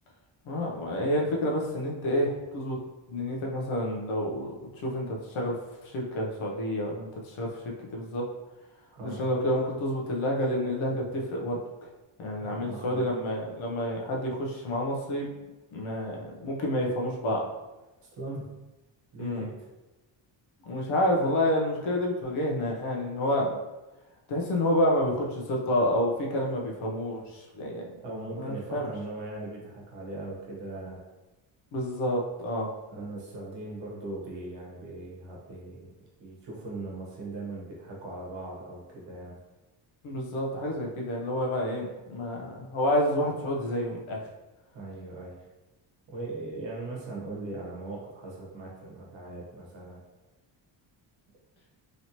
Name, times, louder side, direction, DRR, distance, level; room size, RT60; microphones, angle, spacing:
voice 1, 0.4-2.8 3.1-5.5 5.8-7.5 7.9-8.2 9.0-11.6 12.2-15.3 15.7-17.4 19.2-19.5 20.7-23.5 24.3-27.8 28.3-28.9 31.7-32.7 40.0-44.2, left 1 dB, 75° left, -1 dB, 0.8 m, -29 dB
voice 2, 8.9-9.3 12.4-13.1 18.2-18.5 19.1-19.5 28.0-31.1 32.9-35.9 36.2-39.4 44.7-45.4 46.1-50.0, right 2 dB, 65° right, -3 dB, 1.1 m, -39 dB
3.1 x 2.8 x 2.9 m, 1.1 s
wide cardioid pair, 175°, 48 cm